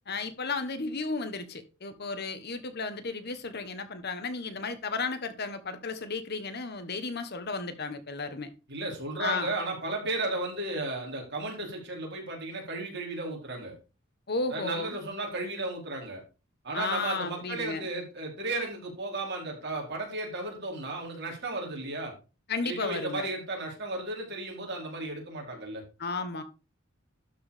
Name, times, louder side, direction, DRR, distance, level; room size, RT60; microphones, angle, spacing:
voice 1, 0.1-8.5 9.2-9.5 14.3-15.0 16.7-17.9 22.5-23.3 26.0-26.4, left 4 dB, 50° left, 1.4 m, -33 dB
voice 2, 8.7-13.7 14.5-16.2 16.6-22.1 22.6-25.8, right 2 dB, 55° right, 4.8 m, -34 dB
12.5 x 5.0 x 5.1 m
head